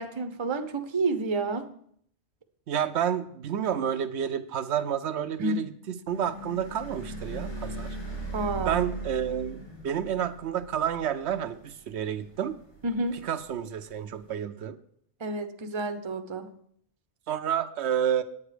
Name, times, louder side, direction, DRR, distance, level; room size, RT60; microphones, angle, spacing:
voice 1, 0.0-1.7 5.4-5.6 8.3-8.9 12.8-13.2 15.2-16.5, right 3 dB, 30° right, 8 dB, 0.7 m, -30 dB
voice 2, 2.7-5.7 6.1-8.0 8.6-9.6 9.8-12.6 13.2-14.8 17.3-18.2, right 9 dB, 75° right, 10 dB, 0.9 m, -29 dB
sound 1, 6.1-14.3, right 2 dB, 85° left, 4.2 m, -40 dB
9.6 x 8.7 x 5.0 m, 0.65 s
omnidirectional pair, 1.2 m